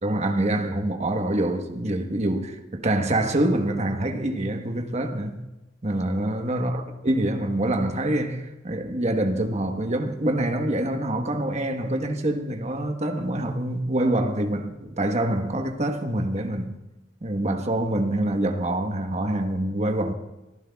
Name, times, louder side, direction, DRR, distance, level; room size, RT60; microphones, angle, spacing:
voice 1, 0.0-5.4 5.8-16.8 17.2-20.1, right 1 dB, 40° right, 1.2 m, -25 dB
25.0 x 15.0 x 2.3 m
head